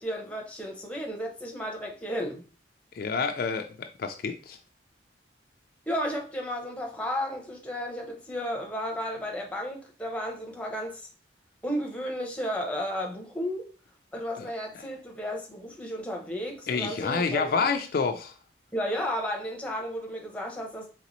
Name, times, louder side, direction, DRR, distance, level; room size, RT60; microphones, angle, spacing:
voice 1, 0.0-2.4 5.9-11.1 11.6-13.6 14.1-17.7 18.7-20.9, equal, 5° left, 0.7 m, -33 dB
voice 2, 3.0-4.6 14.4-14.5 16.7-18.3, left 5 dB, 50° left, 0.3 m, -28 dB
3.9 x 3.4 x 3.0 m
head